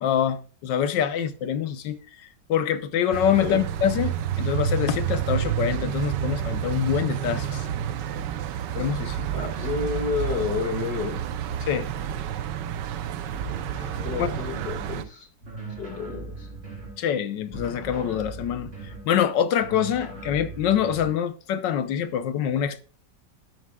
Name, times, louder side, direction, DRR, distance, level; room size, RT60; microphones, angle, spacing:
voice 1, 0.0-2.0 2.5-7.7 8.8-9.3 11.7-11.9 14.2-14.3 17.0-18.7 19.0-22.8, left 9 dB, 90° left, 1.5 m, -25 dB
sound 1, 3.1-15.0, right 9 dB, 85° right, 1.4 m, -29 dB
voice 2, 9.3-11.2 14.0-15.3 15.8-16.5, left 5 dB, 70° left, 2.5 m, -30 dB
sound 2, 13.3-14.9 15.4-17.0 17.5-19.1 19.6-21.2, right 2 dB, 35° right, 4.0 m, -39 dB
12.5 x 9.5 x 2.3 m
omnidirectional pair, 1.9 m